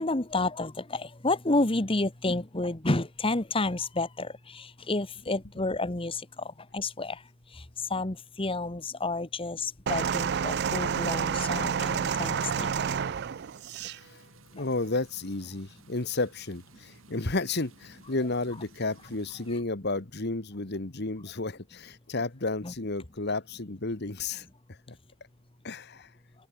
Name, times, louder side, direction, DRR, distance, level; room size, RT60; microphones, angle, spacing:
voice 1, 0.0-7.2 7.5-7.6 7.9-13.0 22.6-22.7, left 2 dB, 25° left, 1.3 m, -30 dB
sound 1, 9.9-14.0 14.9-15.0, right 7 dB, 55° right, 0.4 m, -29 dB
sound 2, 10.5-19.6, right 3 dB, 75° right, 6.0 m, -57 dB
voice 2, 14.5-24.4 24.9-25.0 25.6-26.1, left 3 dB, 55° left, 1.6 m, -32 dB
open air
head